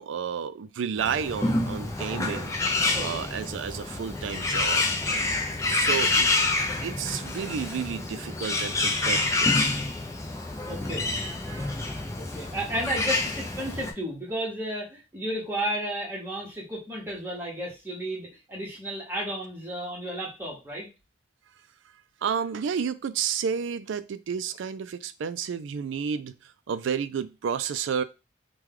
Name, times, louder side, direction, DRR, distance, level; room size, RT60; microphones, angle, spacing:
voice 1, 0.0-2.5 3.0-4.9 5.7-6.3 6.8-9.8 11.2-11.8 22.2-28.0, right 7 dB, 75° right, 0.3 m, -31 dB
Bird, 1.0-13.9, left 2 dB, 15° left, 0.4 m, -27 dB
voice 2, 10.7-11.1 12.2-20.9, right 1 dB, 10° right, 1.1 m, -33 dB
3.1 x 2.2 x 3.6 m
head